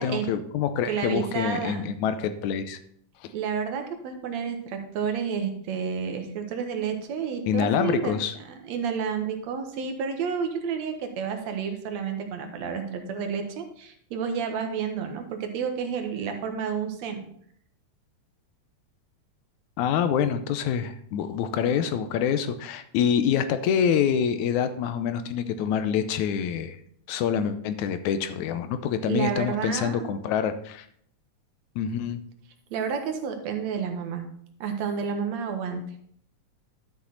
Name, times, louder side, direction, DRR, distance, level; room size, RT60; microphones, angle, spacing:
voice 1, 0.0-2.8 7.5-8.4 19.8-26.8 27.1-30.9 31.8-32.2, left 8 dB, 85° left, 10 dB, 2.1 m, -26 dB
voice 2, 0.9-1.9 3.3-17.3 29.0-30.1 32.7-34.3 34.6-35.8, right 6 dB, 70° right, 5 dB, 2.2 m, -30 dB
11.5 x 6.5 x 3.9 m, 0.64 s
omnidirectional pair, 3.4 m